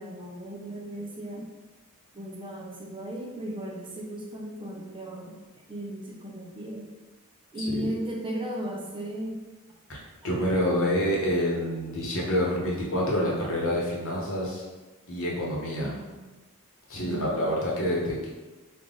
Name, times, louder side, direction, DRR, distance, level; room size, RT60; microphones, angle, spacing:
voice 1, 0.0-1.5 2.1-5.4 5.7-6.9 7.5-9.4 15.8-16.2 17.0-17.5, right 1 dB, 20° right, 0 dB, 0.4 m, -36 dB
voice 2, 7.6-7.9 9.9-14.6 15.1-16.0 16.9-18.3, equal, 60° left, -3 dB, 0.9 m, -27 dB
3.3 x 2.4 x 3.7 m, 1.2 s
head